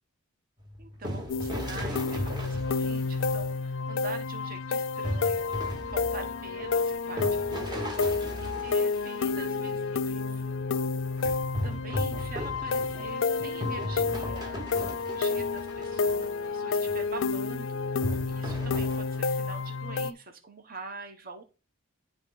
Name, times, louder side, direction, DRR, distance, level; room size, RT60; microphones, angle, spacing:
sound 1, 0.6-3.5 5.0-9.7 11.2-16.5 16.9-17.1 18.0-19.0, equal, 20° right, 1.2 m, -37 dB
voice 1, 0.8-10.4 11.6-21.4, right 3 dB, 45° right, 6 dB, 1.0 m, -45 dB
sound 2, 1.3-20.1, left 4 dB, 65° left, 0.4 m, -30 dB
11.0 x 3.8 x 3.9 m, 0.32 s
head